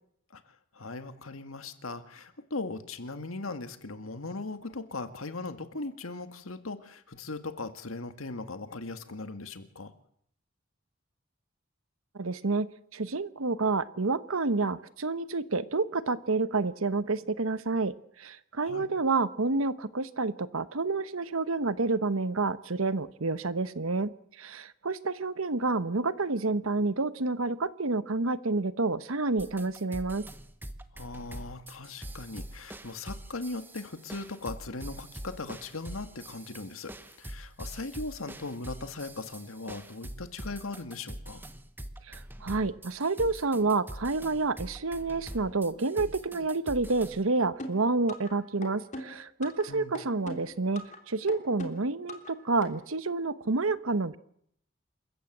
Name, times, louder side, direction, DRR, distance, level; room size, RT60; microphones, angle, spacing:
voice 1, 0.3-9.9 18.6-18.9 30.9-41.4 49.7-50.0, left 3 dB, 90° left, 9 dB, 1.8 m, -39 dB
voice 2, 12.1-30.3 42.1-54.2, right 3 dB, 90° right, 14 dB, 1.1 m, -29 dB
sound 1, 29.4-47.2, right 1 dB, 10° right, 1.0 m, -44 dB
sound 2, 47.6-48.3 48.6-49.7 49.9-51.0 51.3-52.3 52.6-52.7, left 1 dB, 35° left, 3.1 m, -40 dB
27.5 x 15.0 x 8.0 m, 0.70 s
head